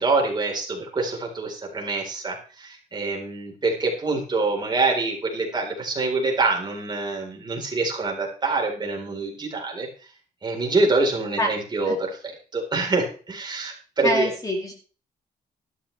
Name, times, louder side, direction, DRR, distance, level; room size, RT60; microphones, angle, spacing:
voice 1, 0.0-9.9 10.4-14.3, right 3 dB, 25° right, 0 dB, 4.1 m, -25 dB
voice 2, 14.0-14.7, equal, 20° left, 2 dB, 2.6 m, -24 dB
13.0 x 12.5 x 3.4 m, 0.38 s
cardioid pair, 155°, 17 cm